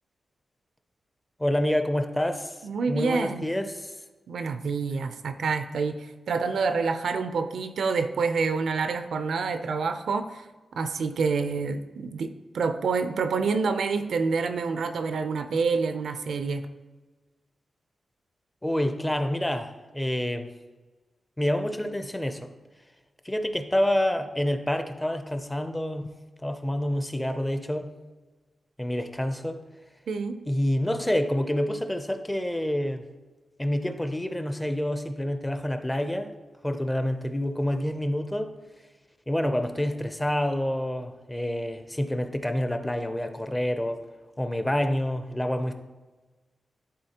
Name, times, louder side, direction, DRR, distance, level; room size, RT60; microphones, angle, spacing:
voice 1, 1.4-2.6 2.9-3.9 18.6-20.5 21.4-22.4 23.2-26.1 26.4-27.9 28.8-29.6 30.5-33.0 33.6-36.3 36.6-38.5 39.3-44.0 44.4-45.7, left 1 dB, 10° left, 7 dB, 0.5 m, -27 dB
voice 2, 2.6-3.5 4.3-10.5 10.8-16.7 30.1-30.4, right 4 dB, 85° right, 9 dB, 0.4 m, -27 dB
11.0 x 4.0 x 2.8 m, 1.3 s
wide cardioid pair, 110°, 0 cm